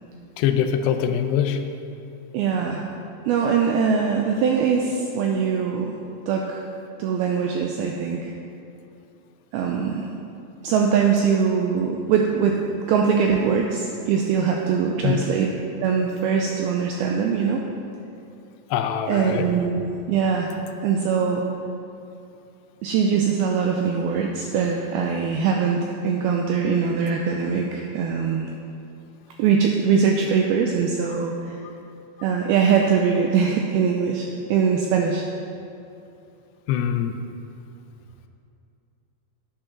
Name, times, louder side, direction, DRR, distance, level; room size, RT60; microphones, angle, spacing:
voice 1, 0.4-1.6 15.0-15.2 18.7-19.5 36.7-37.2, left 9 dB, 80° left, 7 dB, 2.7 m, -23 dB
voice 2, 2.3-2.9 3.3-5.9 6.3-6.7 7.0-8.3 9.5-10.1 10.6-12.6 12.9-15.5 15.8-17.7 19.1-20.6 20.8-21.5 22.8-28.5 29.4-31.6 32.2-35.2, right 6 dB, 85° right, 1 dB, 2.2 m, -22 dB
9.3 x 8.8 x 5.8 m, 2.6 s
omnidirectional pair, 5.0 m